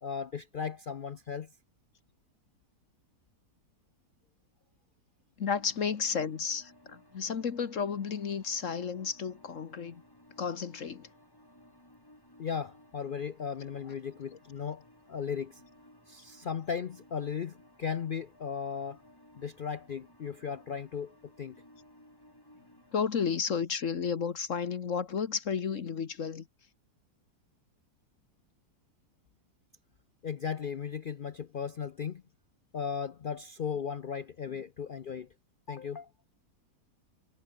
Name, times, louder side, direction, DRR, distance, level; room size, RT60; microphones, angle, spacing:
voice 1, 0.0-1.5 12.4-15.6 16.1-19.0 19.3-21.6 30.2-32.2 32.7-35.3 35.7-36.1, left 7 dB, 85° left, 0.4 m, -36 dB
voice 2, 5.4-10.0 10.4-11.1 22.9-26.4, left 6 dB, 50° left, 1.5 m, -32 dB
sound 1, 5.5-23.1, left 1 dB, 10° left, 5.0 m, -59 dB
omnidirectional pair, 1.8 m